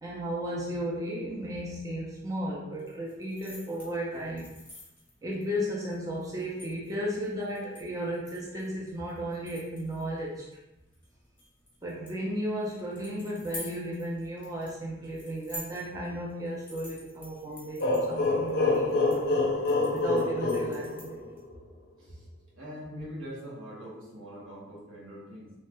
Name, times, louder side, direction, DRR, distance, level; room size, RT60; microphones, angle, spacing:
voice 1, 0.0-4.5 5.2-10.4 11.8-19.3 19.9-21.2, equal, 15° right, -5 dB, 0.4 m, -34 dB
sound 1, 2.7-21.4, left 1 dB, 10° left, 0.8 m, -49 dB
sound 2, 17.8-21.5, left 2 dB, 55° left, 0.5 m, -27 dB
voice 2, 22.5-25.5, equal, 75° right, -4 dB, 1.0 m, -43 dB
3.1 x 3.1 x 2.2 m, 0.97 s
head